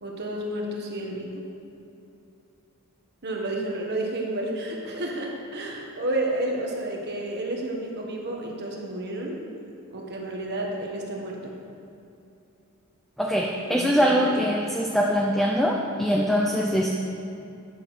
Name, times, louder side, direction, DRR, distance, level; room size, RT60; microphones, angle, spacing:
voice 1, 0.0-1.4 3.2-9.4 9.9-11.5 13.5-14.5, right 1 dB, 50° right, -1 dB, 1.5 m, -31 dB
voice 2, 13.2-16.9, equal, ahead, -2 dB, 0.6 m, -23 dB
9.9 x 6.1 x 6.3 m, 2.7 s
head